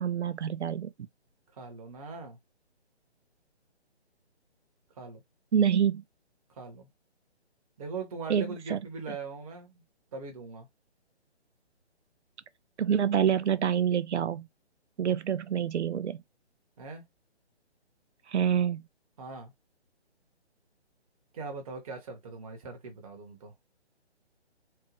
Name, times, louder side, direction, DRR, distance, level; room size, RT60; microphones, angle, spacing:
voice 1, 0.0-0.9 5.5-6.0 8.3-8.8 12.8-14.5 15.0-16.2 18.3-18.8, right 8 dB, 80° right, 0.5 m, -27 dB
voice 2, 1.5-2.4 5.0-5.2 6.5-6.9 7.8-9.8 10.1-10.7 16.8-17.0 19.2-19.5 21.3-23.5, right 4 dB, 30° right, 1.3 m, -41 dB
4.5 x 2.4 x 3.1 m
figure-of-eight pair, 145°, 34 cm